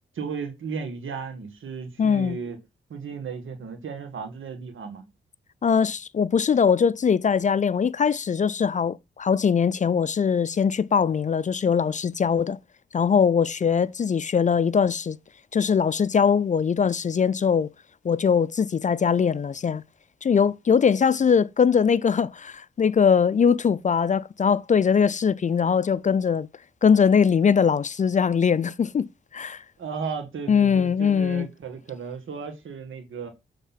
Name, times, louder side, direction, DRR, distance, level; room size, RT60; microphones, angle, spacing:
voice 1, 0.2-2.6 2.9-5.1 29.8-33.3, right 5 dB, 75° right, 1.7 m, -35 dB
voice 2, 2.0-2.4 5.6-12.6 12.9-15.2 15.5-17.7 18.0-19.8 20.2-26.5 26.8-29.6 30.5-31.5, left 6 dB, 40° left, 0.4 m, -21 dB
7.1 x 3.6 x 5.6 m
cardioid pair, 55°, 20 cm